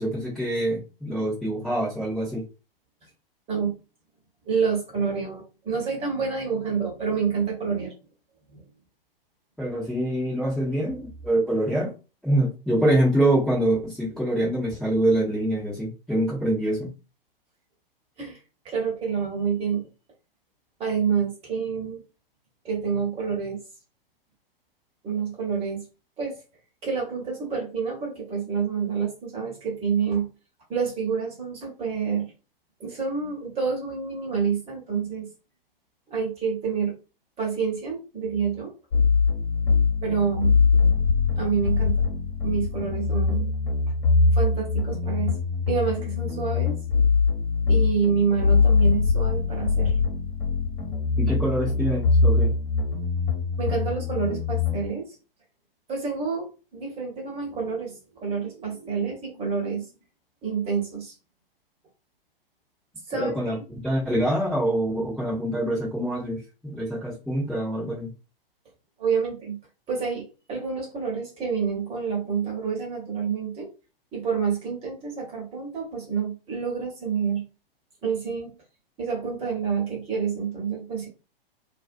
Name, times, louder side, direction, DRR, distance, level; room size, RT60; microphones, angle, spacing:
voice 1, 0.0-2.4 9.6-11.9 12.2-16.9 51.2-52.5 63.1-63.6 63.8-68.1, right 1 dB, ahead, -10 dB, 0.7 m, -25 dB
voice 2, 4.4-7.9 8.5-8.6 10.6-10.8 18.2-18.4 18.6-19.8 20.8-22.0 22.6-23.6 25.0-25.9 26.2-26.4 26.8-30.3 30.7-32.3 32.8-35.3 36.1-36.9 37.4-38.7 40.0-40.8 41.4-42.1 42.4-43.5 44.3-45.4 45.7-46.8 47.7-50.0 53.6-55.2 55.9-59.9 60.4-61.1 63.1-63.3 69.0-69.6 69.9-73.7 74.1-77.4 78.0-78.5 79.0-81.1, right 6 dB, 20° right, -1 dB, 1.0 m, -28 dB
sound 1, 38.9-54.9, left 4 dB, 65° left, 1.1 m, -23 dB
2.5 x 2.3 x 2.5 m, 0.32 s
figure-of-eight pair, 115°, 29 cm